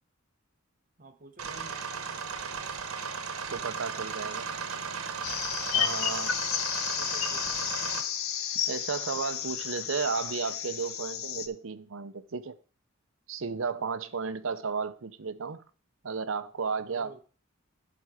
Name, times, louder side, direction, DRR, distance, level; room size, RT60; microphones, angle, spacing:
voice 1, 1.0-1.8 7.0-7.7 13.7-14.1 16.8-17.2, right 2 dB, 40° right, 0.9 m, -50 dB
sound 1, 1.4-8.0, right 5 dB, 85° right, 1.1 m, -36 dB
voice 2, 3.5-4.5 5.7-6.4 8.7-12.6 13.3-15.6 16.0-17.2, right 5 dB, 65° right, 0.6 m, -33 dB
sound 2, 5.2-11.5, left 9 dB, 75° left, 0.7 m, -32 dB
11.5 x 4.3 x 4.8 m
head